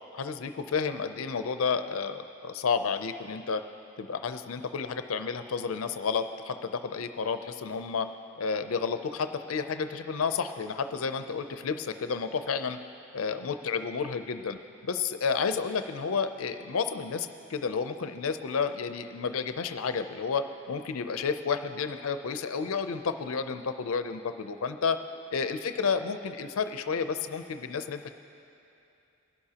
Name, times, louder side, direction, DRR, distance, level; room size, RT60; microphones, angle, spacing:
voice 1, 0.1-3.6 4.0-8.1 8.4-12.8 13.1-25.0 25.3-28.1, left 5 dB, 75° left, 9 dB, 0.5 m, -31 dB
22.0 x 11.5 x 2.9 m, 2.7 s
head